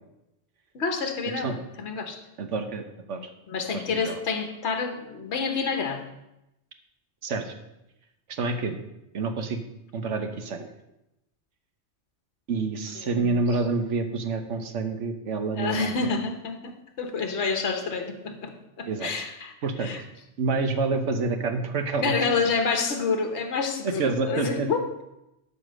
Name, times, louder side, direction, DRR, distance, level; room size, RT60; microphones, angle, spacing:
voice 1, 0.7-2.2 3.5-6.0 13.0-13.4 15.5-16.7 17.0-19.5 19.8-20.0 22.0-24.8, left 4 dB, 70° left, 5 dB, 1.4 m, -28 dB
voice 2, 2.4-3.3 3.7-4.2 7.2-7.5 8.3-8.8 9.1-9.6 9.9-10.7 12.5-16.1 18.9-19.2 19.6-19.9 20.4-22.3 23.8-24.7, right 3 dB, 85° right, 7 dB, 1.3 m, -28 dB
12.0 x 4.3 x 6.3 m, 0.89 s
omnidirectional pair, 1.2 m